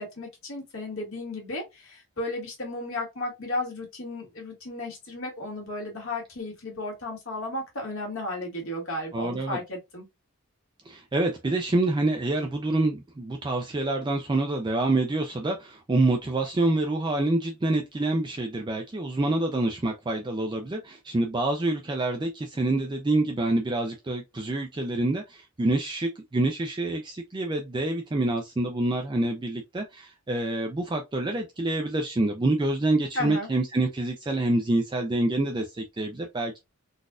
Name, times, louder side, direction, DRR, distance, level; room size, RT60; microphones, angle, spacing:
voice 1, 0.0-10.0 33.1-33.5, left 2 dB, 60° left, 1.6 m, -34 dB
voice 2, 9.1-9.6 10.9-36.6, right 2 dB, 20° right, 0.4 m, -27 dB
3.9 x 2.5 x 2.4 m
head